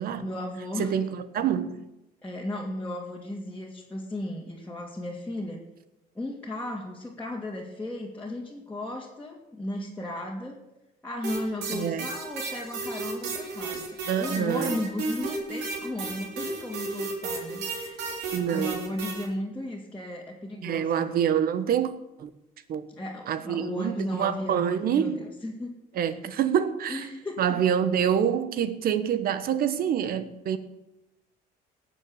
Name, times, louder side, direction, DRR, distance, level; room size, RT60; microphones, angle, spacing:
voice 1, 0.2-1.0 2.2-5.6 6.1-10.6 11.0-13.8 14.2-18.0 18.3-21.1 23.0-25.7 26.9-27.6, left 1 dB, 10° left, 2.4 m, -35 dB
voice 2, 0.8-1.8 11.7-12.1 14.1-14.8 18.3-18.8 20.6-21.9 22.2-22.3 22.7-22.9 23.3-25.2 25.9-27.1 27.4-30.6, right 8 dB, 60° right, 1.3 m, -26 dB
sound 1, 11.2-19.2, right 3 dB, 80° right, 3.4 m, -34 dB
18.0 x 7.3 x 7.2 m
cardioid pair, 110°, 17 cm